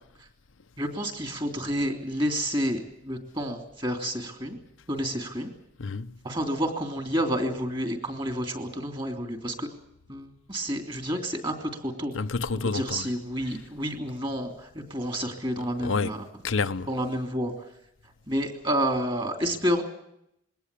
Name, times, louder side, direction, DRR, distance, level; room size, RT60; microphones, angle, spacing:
voice 1, 0.8-4.6 4.9-5.5 6.2-9.7 10.1-12.1 12.7-16.2 16.9-17.5 18.3-19.8, equal, 25° right, 3.1 m, -29 dB
voice 2, 5.8-6.2 12.1-13.1 13.5-13.6 15.8-16.2 16.4-16.9, left 4 dB, 80° left, 0.8 m, -29 dB
22.0 x 17.5 x 8.5 m
head